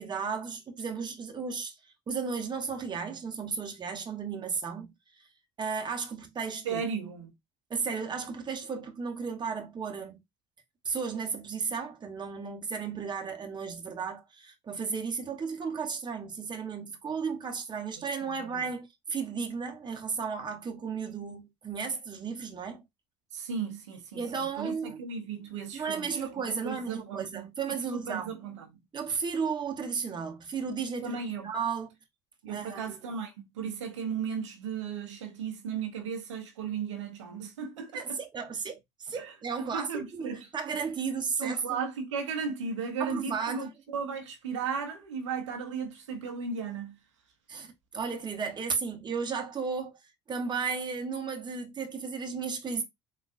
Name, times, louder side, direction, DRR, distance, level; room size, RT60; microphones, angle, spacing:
voice 1, 0.0-1.8 2.1-4.9 5.2-5.3 5.6-6.8 7.7-10.2 10.8-22.8 24.1-25.0 25.7-28.3 28.9-31.2 31.4-31.9 32.5-32.8 37.9-41.6 43.0-43.7 47.5-50.0 50.3-52.8, right 5 dB, 30° right, 0.8 m, -34 dB
voice 2, 6.6-7.3 18.2-18.6 23.3-28.8 31.0-31.5 32.4-38.2 39.2-39.3 39.6-40.5 41.4-47.0, right 6 dB, 85° right, 0.7 m, -36 dB
3.6 x 2.3 x 2.4 m
hypercardioid pair, 65°, 15 cm